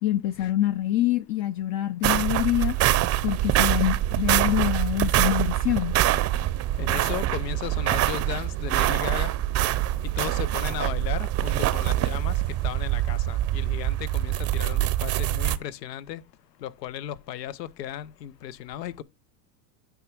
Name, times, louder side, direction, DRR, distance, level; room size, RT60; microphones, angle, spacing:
voice 1, 0.0-2.8 3.2-6.0, left 13 dB, 45° left, 0.6 m, -25 dB
sound 1, 2.0-15.6, right 14 dB, 30° right, 0.6 m, -25 dB
voice 2, 6.8-9.3 10.2-12.3 12.6-16.2 16.6-19.0, left 10 dB, 85° left, 0.8 m, -35 dB
9.3 x 3.5 x 5.9 m
hypercardioid pair, 105°, 49 cm